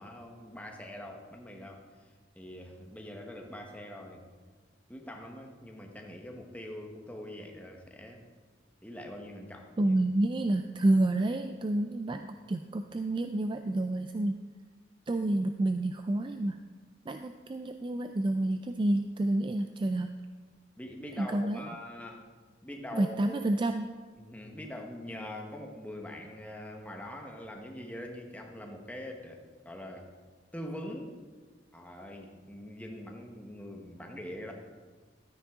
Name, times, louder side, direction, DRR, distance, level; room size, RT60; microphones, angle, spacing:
voice 1, 0.0-4.3 4.9-8.2 8.8-9.9 20.8-22.2 22.6-23.4 24.2-30.1 30.5-31.2 31.7-34.5, left 1 dB, 10° left, 2 dB, 1.1 m, -43 dB
voice 2, 9.8-14.3 15.1-16.6 17.1-20.2 21.2-21.6 22.9-23.9, right 1 dB, 25° right, 7 dB, 0.3 m, -29 dB
12.5 x 9.3 x 3.6 m, 1.5 s
head